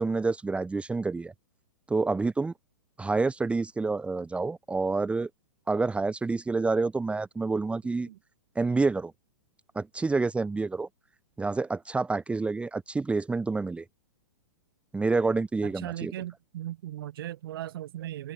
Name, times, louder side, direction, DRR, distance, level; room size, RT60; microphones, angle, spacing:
voice 1, 0.0-1.3 1.9-2.5 3.0-5.3 5.7-8.1 8.5-9.1 9.7-10.9 11.4-13.8 14.9-16.1, right 3 dB, 10° right, 1.3 m, -28 dB
voice 2, 15.6-18.3, right 13 dB, 60° right, 4.4 m, -38 dB
hypercardioid pair, 110°, 13 cm